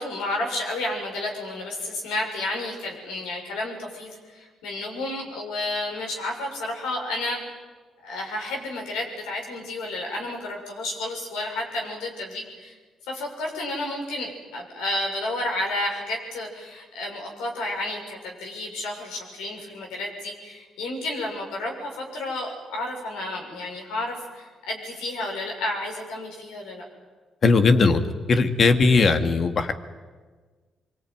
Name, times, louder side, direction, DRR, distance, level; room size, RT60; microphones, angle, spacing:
voice 1, 0.0-7.4 8.0-12.7 13.1-26.8, left 2 dB, 80° left, 0 dB, 6.9 m, -31 dB
voice 2, 27.4-28.0 28.3-29.7, left 4 dB, 55° left, 8 dB, 2.3 m, -18 dB
24.0 x 24.0 x 9.5 m, 1.4 s
hypercardioid pair, 45°, 0 cm